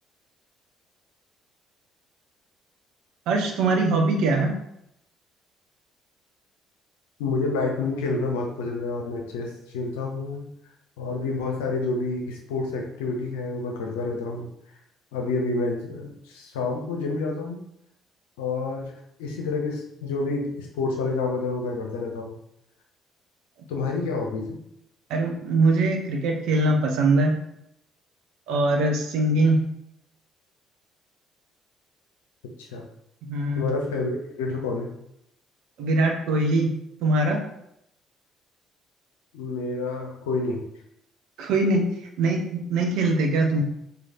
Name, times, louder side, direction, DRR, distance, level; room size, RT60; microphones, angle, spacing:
voice 1, 3.3-4.6 25.1-27.4 28.5-29.7 33.2-33.7 35.8-37.4 41.4-41.9 42.2-43.6, right 2 dB, 65° right, 2 dB, 0.7 m, -22 dB
voice 2, 7.2-10.5 11.0-14.5 15.1-17.6 18.4-18.9 19.2-22.4 23.7-24.6 32.7-32.9 33.5-34.9 39.3-40.6, left 3 dB, 75° left, 1 dB, 0.7 m, -28 dB
3.2 x 2.8 x 4.0 m, 0.77 s
figure-of-eight pair, 50°, 0 cm